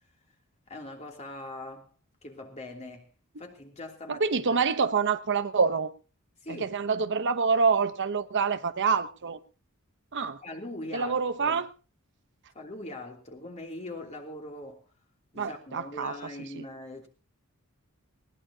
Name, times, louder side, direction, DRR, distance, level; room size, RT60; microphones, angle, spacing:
voice 1, 0.7-1.9 2.2-3.1 3.4-4.6 6.4-6.7 10.4-11.6 12.5-14.8 15.3-17.1, left 1 dB, 30° left, 3.0 m, -41 dB
voice 2, 4.1-5.9 6.5-9.4 10.1-10.4 10.9-11.7 15.4-16.1, right 5 dB, 55° right, 0.9 m, -26 dB
20.0 x 18.0 x 2.8 m
head